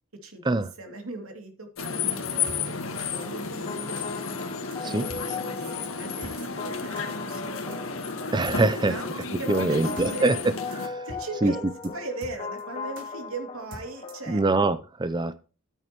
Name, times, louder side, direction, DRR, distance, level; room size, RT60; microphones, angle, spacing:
voice 1, 0.2-4.1 4.3-4.4 4.8-7.8 8.8-9.1 9.4-10.3 11.0-14.4, right 2 dB, 85° right, 5 dB, 2.8 m, -39 dB
sound 1, 1.8-10.9, left 5 dB, 70° left, 1.7 m, -32 dB
sound 2, 2.5-2.6 3.2-3.3 4.0-4.1 4.7-4.8 5.1-5.2 5.5-5.6 5.8-5.9 6.2-6.3 7.0-7.1 7.7-7.8 8.5-8.6 9.2-9.3 9.6-9.7 10.0-10.1 10.3-10.4 10.7-10.8 11.1-11.2 11.5-11.6 11.8-11.9 12.2-12.6 13.0-13.1 13.7-14.3, right 1 dB, 65° right, 3.1 m, -42 dB
sound 3, 3.1-14.7, left 4 dB, 30° left, 2.2 m, -39 dB
voice 2, 8.3-9.0 9.5-10.3 10.8-11.1 11.4-11.5 14.3-15.3, right 2 dB, 20° right, 13 dB, 0.5 m, -23 dB
13.5 x 9.1 x 3.0 m, 0.34 s
head